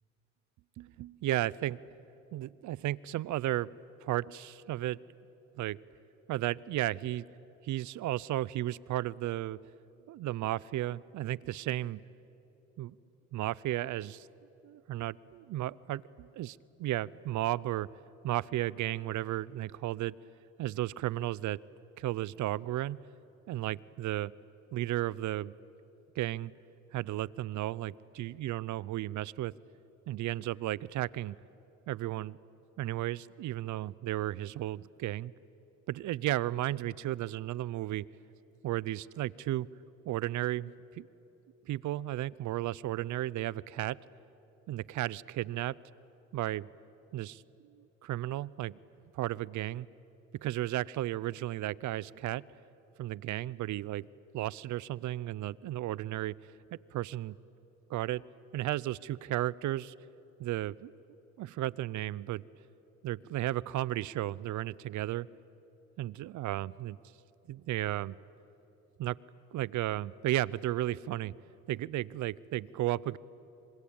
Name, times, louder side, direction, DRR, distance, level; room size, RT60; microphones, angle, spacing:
voice 1, 0.8-1.8 2.3-3.7 4.0-5.0 5.6-5.8 6.3-7.2 7.6-9.6 10.1-12.0 12.8-13.0 13.3-14.3 14.6-17.9 18.2-20.1 20.6-21.6 22.0-23.0 23.5-24.3 24.7-25.5 26.2-26.5 26.9-29.5 30.1-31.4 31.9-32.4 32.8-35.3 35.9-38.1 38.6-39.7 40.1-41.1 41.7-44.0 44.7-45.8 46.3-46.7 47.1-48.8 49.1-49.9 50.4-52.4 53.0-54.1 54.3-56.4 56.7-57.3 57.9-58.2 58.5-59.9 60.4-60.9 61.4-62.4 63.0-65.3 66.0-67.0 67.5-68.2 69.0-69.2 69.5-71.3 71.7-73.2, right 15 dB, 75° right, 22 dB, 0.6 m, -34 dB
26.5 x 25.5 x 8.8 m, 2.9 s
cardioid pair, 90°, 30 cm